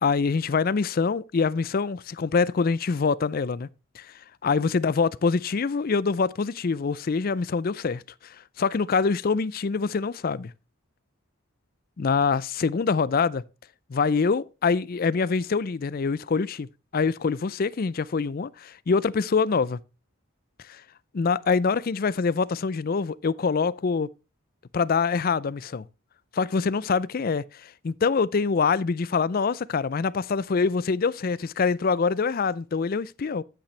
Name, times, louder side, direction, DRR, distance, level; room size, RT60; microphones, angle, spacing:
voice 1, 0.0-3.7 4.0-4.1 4.4-10.5 12.0-13.4 13.9-16.7 16.9-19.8 20.7-20.8 21.1-24.1 24.7-25.9 26.3-33.4, left 5 dB, 40° left, 0.4 m, -25 dB
10.0 x 8.8 x 3.2 m
head